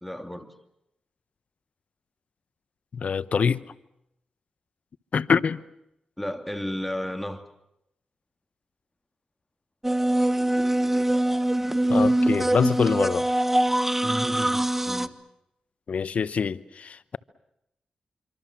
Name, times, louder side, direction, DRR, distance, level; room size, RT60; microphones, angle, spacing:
voice 1, 0.0-0.5 6.2-7.4 14.0-15.1, left 1 dB, 5° left, 2.8 m, -33 dB
voice 2, 2.9-3.6 5.1-5.6 11.9-13.3 15.9-17.2, left 6 dB, 65° left, 0.9 m, -25 dB
sound 1, 9.8-15.1, right 1 dB, 10° right, 1.2 m, -23 dB
26.0 x 25.5 x 7.4 m
cardioid pair, 55°, 2 cm